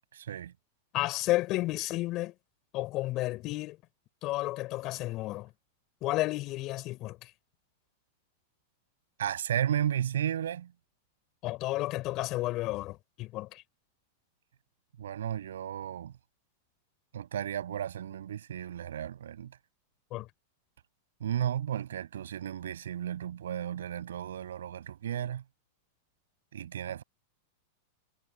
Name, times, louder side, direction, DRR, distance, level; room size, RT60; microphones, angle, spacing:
voice 1, 0.1-0.5 9.2-10.7 15.0-16.1 17.1-19.5 21.2-25.4 26.5-27.0, right 10 dB, 90° right, 7.8 m, -34 dB
voice 2, 0.9-2.3 2.7-3.8 4.2-5.5 6.0-7.3 11.4-13.6 20.1-20.3, left 18 dB, 40° left, 5.3 m, -32 dB
hypercardioid pair, 130°, 0 cm